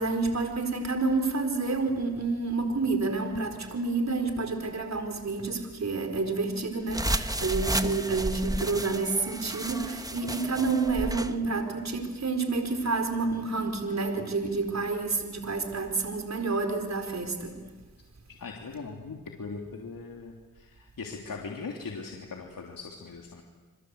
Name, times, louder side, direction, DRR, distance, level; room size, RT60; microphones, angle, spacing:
voice 1, 0.0-17.6, right 3 dB, 45° right, 5 dB, 4.3 m, -29 dB
sound 1, 6.9-11.3, right 1 dB, 10° right, 1.4 m, -32 dB
voice 2, 18.3-23.4, left 4 dB, 65° left, 0 dB, 3.3 m, -40 dB
28.5 x 25.0 x 8.2 m, 1.3 s
cardioid pair, 55°, 36 cm